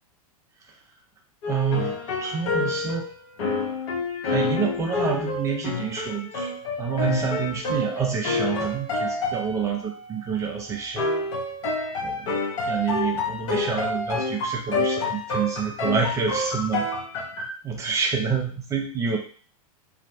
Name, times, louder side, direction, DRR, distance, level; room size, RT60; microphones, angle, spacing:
sound 1, 1.4-17.5, left 3 dB, 55° left, 0.7 m, -28 dB
voice 1, 1.5-3.1 4.3-6.5 6.8-11.1 12.0-12.3 12.6-16.8 17.6-19.2, right 6 dB, 15° right, 2 dB, 0.3 m, -28 dB
2.6 x 2.0 x 2.5 m, 0.42 s
figure-of-eight pair, 95°, 19 cm